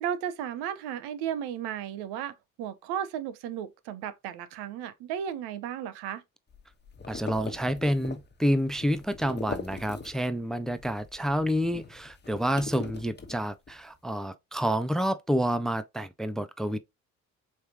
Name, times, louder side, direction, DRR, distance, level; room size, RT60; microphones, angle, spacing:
voice 1, 0.0-6.2, right 9 dB, 75° right, 0.7 m, -34 dB
sound 1, 6.5-10.4 10.7-13.8, left 4 dB, 25° left, 1.2 m, -41 dB
voice 2, 7.1-16.8, equal, ahead, 0.5 m, -28 dB
4.7 x 3.2 x 2.8 m
hypercardioid pair, 50°, 40 cm